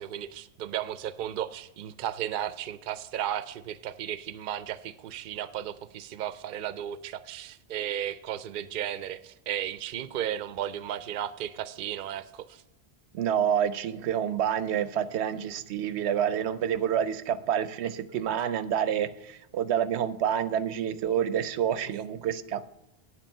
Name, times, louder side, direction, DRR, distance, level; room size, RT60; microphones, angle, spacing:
voice 1, 0.0-12.6, right 11 dB, 60° right, 14 dB, 0.6 m, -34 dB
voice 2, 13.1-22.7, right 9 dB, 90° right, 14 dB, 0.9 m, -28 dB
9.0 x 7.5 x 5.4 m, 0.88 s
omnidirectional pair, 1.1 m